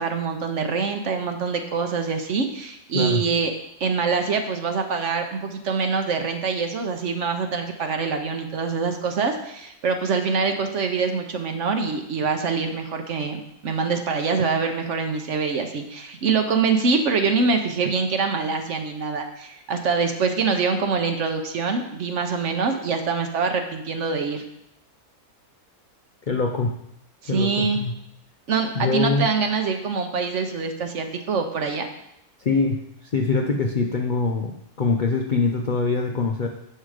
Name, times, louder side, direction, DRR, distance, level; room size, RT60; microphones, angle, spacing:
voice 1, 0.0-3.5 3.8-24.4 27.2-27.8 28.5-31.9, right 5 dB, 55° right, 5 dB, 1.0 m, -24 dB
voice 2, 26.3-26.8 27.3-28.0 28.8-29.3 32.4-32.8 33.1-36.5, left 4 dB, 70° left, 3 dB, 0.4 m, -23 dB
7.6 x 5.7 x 4.9 m, 0.80 s
omnidirectional pair, 1.6 m